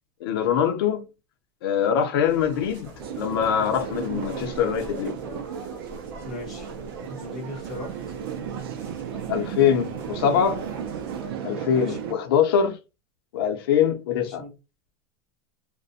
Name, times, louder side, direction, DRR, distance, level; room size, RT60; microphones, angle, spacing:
voice 1, 0.2-1.0 1.6-5.2 9.3-10.6 11.4-12.8 13.3-14.4, left 8 dB, 75° left, 0.6 m, -23 dB
sound 1, 2.2-11.3, equal, 40° right, 1.0 m, -45 dB
sound 2, 3.0-12.1, right 8 dB, 75° right, 0.5 m, -34 dB
voice 2, 6.2-6.7 7.0-7.9 11.7-12.2 14.2-14.6, left 1 dB, ahead, 1.0 m, -38 dB
2.4 x 2.1 x 2.6 m
supercardioid pair, 180°, 12 cm